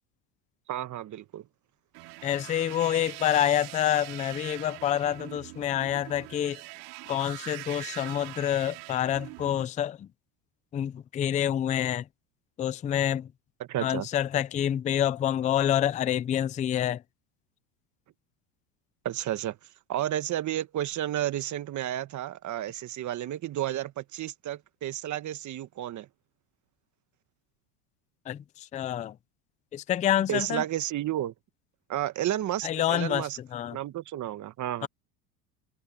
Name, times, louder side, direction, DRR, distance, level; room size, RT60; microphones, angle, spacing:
voice 1, 0.7-1.5 13.6-14.1 19.0-19.6 19.9-26.1 30.3-31.3 31.9-33.4 33.7-34.9, right 12 dB, 35° right, 1.3 m, -32 dB
sound 1, 1.9-9.7, right 27 dB, 70° right, 4.3 m, -43 dB
voice 2, 2.2-6.6 7.1-10.1 10.7-12.1 12.6-13.3 13.8-17.0 28.3-29.2 29.7-30.6 32.6-33.8 34.8-34.9, left 11 dB, 15° left, 0.4 m, -27 dB
supercardioid pair, 115°, 49 cm